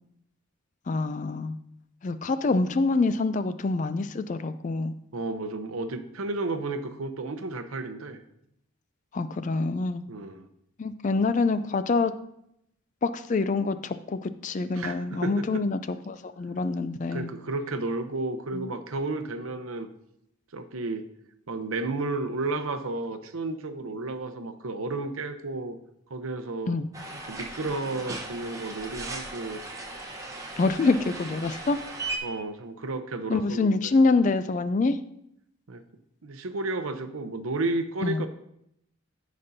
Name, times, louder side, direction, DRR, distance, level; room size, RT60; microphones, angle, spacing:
voice 1, 0.9-1.6 2.0-4.9 9.1-10.0 10.8-12.1 13.0-17.3 18.5-18.7 26.7-26.9 30.6-31.8 33.3-35.0 38.0-38.2, left 3 dB, 35° left, 12 dB, 0.3 m, -26 dB
voice 2, 5.1-8.2 10.1-10.4 14.7-15.6 17.1-19.9 20.5-21.1 21.5-25.8 26.1-26.8 27.1-29.6 32.2-33.9 35.7-35.8 36.2-38.3, right 2 dB, 75° right, 9 dB, 0.7 m, -32 dB
sound 1, 26.9-32.2, right 2 dB, 15° right, 0.9 m, -37 dB
15.0 x 5.2 x 2.7 m, 0.76 s
head